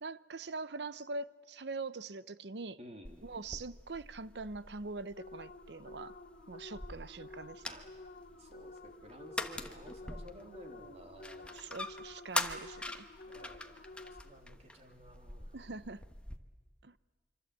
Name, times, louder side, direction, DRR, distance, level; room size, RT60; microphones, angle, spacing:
voice 1, 0.0-2.8 3.2-6.2 6.5-7.6 11.5-13.1 15.5-16.0 16.8-16.9, right 3 dB, 70° right, 0.8 m, -43 dB
voice 2, 2.8-3.2 7.7-7.9 8.4-11.6 13.2-15.5, equal, 40° right, 3.2 m, -53 dB
sound 1, 3.0-16.4, left 2 dB, 5° left, 1.2 m, -44 dB
sound 2, 5.2-14.5, left 2 dB, 60° left, 2.0 m, -52 dB
25.5 x 25.5 x 8.4 m
head